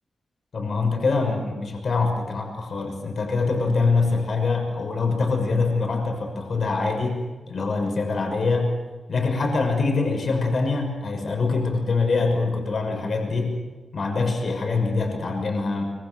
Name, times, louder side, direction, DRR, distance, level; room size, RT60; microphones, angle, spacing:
voice 1, 0.5-8.8 9.1-13.6 13.9-15.8, left 3 dB, 55° left, 3 dB, 6.1 m, -24 dB
25.5 x 25.0 x 7.0 m, 1.3 s
wide cardioid pair, 125°, 0 cm